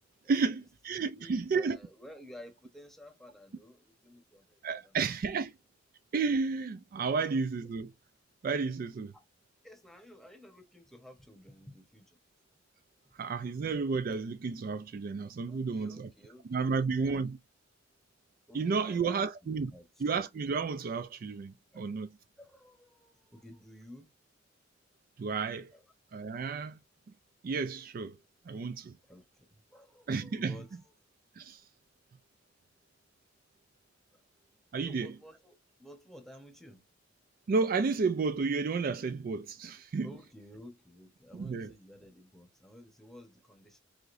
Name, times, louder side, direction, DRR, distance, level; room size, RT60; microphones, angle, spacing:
voice 1, 0.3-1.8 4.6-5.5 6.1-7.9 8.4-9.1 13.2-16.1 16.5-17.4 18.5-19.7 20.0-22.1 25.2-25.7 26.1-26.8 27.4-28.1 28.5-28.9 30.1-30.5 31.4-31.6 34.7-35.1 37.5-40.1 41.3-41.7, right 4 dB, 45° right, 0.3 m, -32 dB
voice 2, 0.9-5.1 7.0-7.7 9.1-9.2 9.6-12.2 13.2-13.3 15.4-17.2 18.5-20.1 21.7-21.9 22.4-24.1 25.7-25.8 29.1-30.9 34.1-34.2 34.8-36.8 40.0-43.8, left 1 dB, ahead, 1.0 m, -53 dB
5.0 x 3.7 x 2.5 m
head